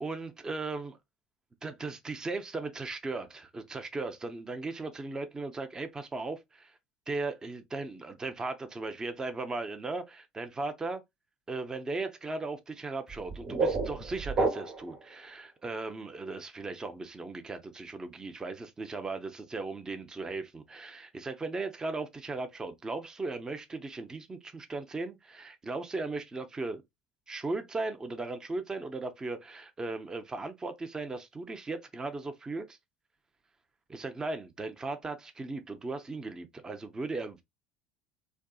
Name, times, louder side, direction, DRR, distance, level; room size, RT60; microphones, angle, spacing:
voice 1, 0.0-1.0 1.6-6.8 7.1-11.0 11.5-26.8 27.3-32.8 33.9-37.4, right 3 dB, 20° right, 0.6 m, -37 dB
sound 1, 13.1-15.0, right 3 dB, 40° right, 1.2 m, -30 dB
3.5 x 2.6 x 2.3 m
hypercardioid pair, 75°, 3 cm